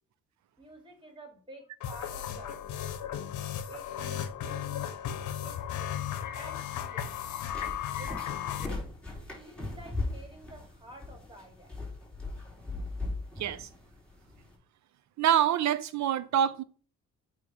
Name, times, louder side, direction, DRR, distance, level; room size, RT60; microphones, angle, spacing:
voice 1, 0.6-2.9 3.7-4.9 5.4-6.0 6.3-7.2 7.9-8.8 9.3-11.8, right 1 dB, 15° right, 2.7 m, -50 dB
sound 1, 1.8-8.7, left 10 dB, 75° left, 0.8 m, -35 dB
sound 2, 7.1-14.5, left 2 dB, 5° left, 3.6 m, -39 dB
voice 2, 13.4-13.7 15.2-16.6, right 10 dB, 65° right, 0.7 m, -26 dB
8.4 x 3.1 x 5.0 m
cardioid pair, 90°, 30 cm